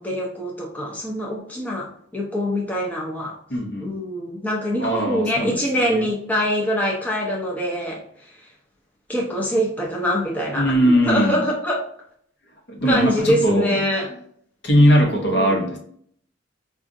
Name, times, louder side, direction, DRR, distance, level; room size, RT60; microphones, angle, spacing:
voice 1, 0.0-1.9 2.1-3.3 3.8-8.0 9.1-11.8 12.8-14.2 15.1-15.6, equal, 10° left, -2 dB, 0.5 m, -24 dB
voice 2, 3.5-3.9 4.8-5.5 5.8-6.0 10.5-11.4 12.7-13.8 14.6-15.8, equal, 55° left, 1 dB, 0.8 m, -19 dB
4.8 x 2.4 x 2.5 m, 0.64 s
head